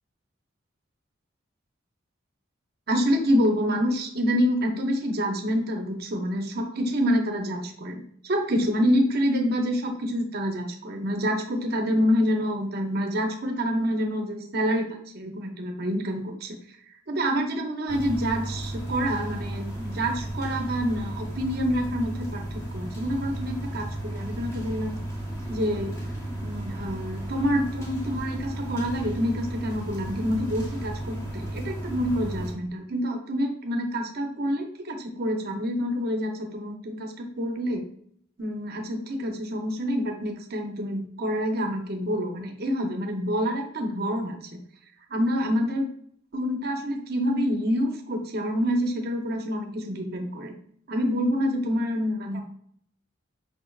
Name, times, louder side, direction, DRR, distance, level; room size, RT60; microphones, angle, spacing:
voice 1, 2.9-25.0 25.5-26.0 26.4-37.9 38.4-44.6 45.1-45.9 46.3-50.5 50.9-52.4, equal, 50° right, 3 dB, 0.6 m, -27 dB
sound 1, 17.9-32.5, right 1 dB, 15° left, 0.9 m, -34 dB
4.9 x 3.2 x 2.3 m, 0.64 s
head